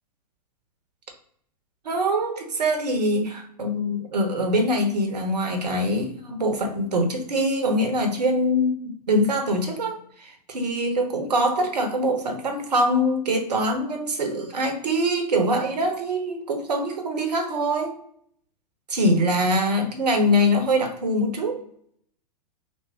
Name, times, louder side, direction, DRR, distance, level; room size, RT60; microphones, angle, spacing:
voice 1, 1.8-8.7 9.1-18.0 18.9-21.6, equal, 70° right, 5 dB, 1.0 m, -23 dB
3.5 x 2.4 x 3.4 m, 0.65 s
figure-of-eight pair, 100°, 21 cm